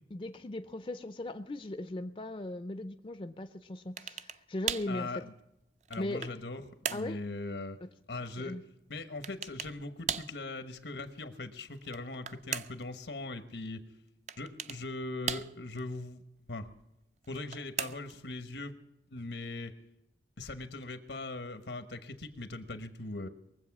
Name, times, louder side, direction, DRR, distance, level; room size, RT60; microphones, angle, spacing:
voice 1, 0.1-5.1 6.0-6.4 6.9-7.2 8.4-8.6, left 1 dB, 30° left, 10 dB, 0.4 m, -38 dB
sound 1, 4.0-4.4 4.7-5.0 5.6-6.4 6.8-7.1 9.2-9.8 10.1-10.4 11.8-12.9 14.3-14.8 15.3-15.8 17.2-18.2, right 8 dB, 40° right, 0.4 m, -37 dB
voice 2, 4.9-5.3 5.9-7.8 8.1-8.6 8.9-13.8 14.4-16.2 16.5-16.7 17.3-18.7 19.1-19.7 20.4-23.3, left 2 dB, 85° left, 9 dB, 1.2 m, -40 dB
22.0 x 7.9 x 6.0 m, 0.87 s
head